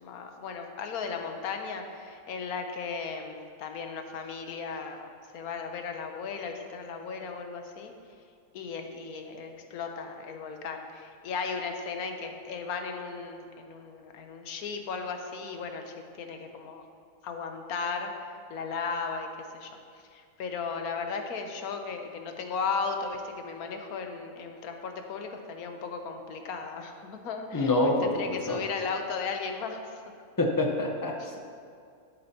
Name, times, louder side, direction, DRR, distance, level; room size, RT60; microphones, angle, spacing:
voice 1, 0.0-5.1 5.3-7.9 8.5-16.8 17.2-18.1 18.5-19.3 19.5-19.7 20.1-29.8 31.2-31.3, left 5 dB, 85° left, 5 dB, 1.3 m, -36 dB
voice 2, 27.5-28.6 30.4-31.4, left 2 dB, 20° left, 1 dB, 0.7 m, -26 dB
11.0 x 8.4 x 2.8 m, 2.3 s
omnidirectional pair, 1.5 m